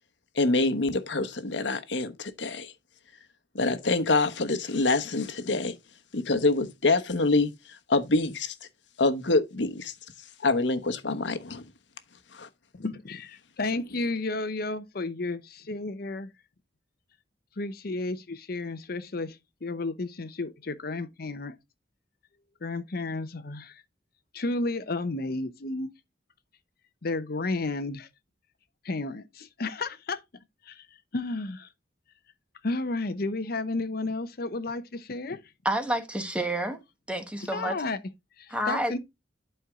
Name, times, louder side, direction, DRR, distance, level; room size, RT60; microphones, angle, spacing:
voice 1, 0.3-2.7 3.5-5.7 6.1-7.5 7.9-8.5 9.0-9.9 10.4-11.6 12.3-12.5, left 3 dB, 80° left, 1.1 m, -25 dB
voice 2, 12.7-16.3 17.6-21.5 22.6-23.8 24.3-25.9 27.0-28.1 28.8-30.2 30.6-30.9 31.1-31.7 32.6-35.4 37.4-38.0 38.4-39.0, left 2 dB, 55° left, 0.8 m, -32 dB
voice 3, 35.6-36.8 37.1-37.7 38.5-39.0, right 1 dB, 5° right, 1.1 m, -29 dB
11.0 x 4.5 x 3.6 m
head